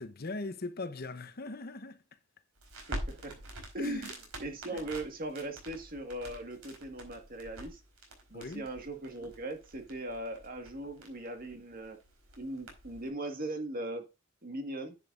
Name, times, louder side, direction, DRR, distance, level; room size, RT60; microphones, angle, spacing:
voice 1, 0.0-2.0 3.8-4.1 4.7-4.8 8.3-8.7, left 2 dB, 45° left, 0.9 m, -40 dB
Crackle, 2.6-13.1, right 1 dB, 90° right, 4.4 m, -46 dB
voice 2, 2.9-3.4 3.7-7.8 8.3-12.0 12.4-14.1 14.4-14.9, right 1 dB, 45° right, 1.8 m, -39 dB
10.5 x 8.2 x 2.6 m
head